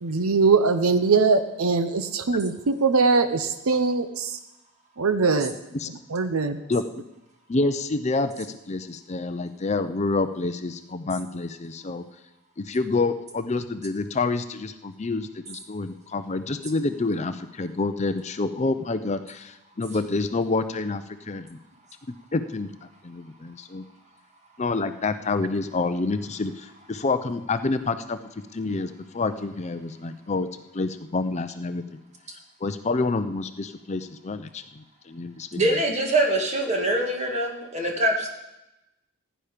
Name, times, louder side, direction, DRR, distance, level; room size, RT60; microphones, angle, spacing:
voice 1, 0.0-4.4 5.0-5.5 6.1-6.6, right 4 dB, 75° right, 10 dB, 0.7 m, -22 dB
voice 2, 7.5-12.0 12.6-21.6 22.3-22.7 23.0-23.8 24.6-28.2 28.5-30.5 30.7-31.8 32.6-35.6, left 3 dB, 30° left, 10 dB, 0.5 m, -28 dB
voice 3, 35.6-38.3, right 1 dB, 30° right, 1 dB, 2.0 m, -24 dB
15.5 x 10.0 x 5.1 m, 0.95 s
head